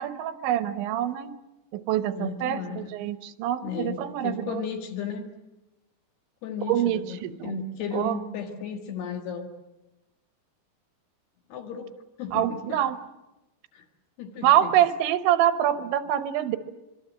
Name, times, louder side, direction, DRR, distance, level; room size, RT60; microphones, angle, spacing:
voice 1, 0.0-1.3 1.7-4.6 6.7-7.6 7.9-8.2 12.3-13.0 14.4-16.6, right 11 dB, 85° right, 12 dB, 3.3 m, -25 dB
voice 2, 2.2-2.9 3.6-4.0 4.2-5.3 6.4-9.5 11.5-11.9 12.2-12.8 13.7-13.9 14.2-14.7, left 6 dB, 65° left, 5 dB, 3.7 m, -34 dB
25.0 x 23.5 x 7.5 m, 0.99 s
omnidirectional pair, 5.2 m